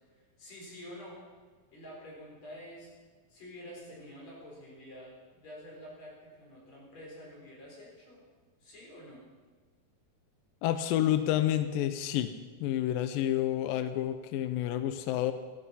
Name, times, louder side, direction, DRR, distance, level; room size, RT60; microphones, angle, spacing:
voice 1, 0.1-1.2 1.7-2.9 3.3-8.2 8.6-9.2, equal, 50° left, -3 dB, 5.5 m, -48 dB
voice 2, 10.6-12.3 12.6-15.3, left 12 dB, 90° left, 10 dB, 2.4 m, -29 dB
17.5 x 13.5 x 5.6 m, 1.4 s
omnidirectional pair, 4.0 m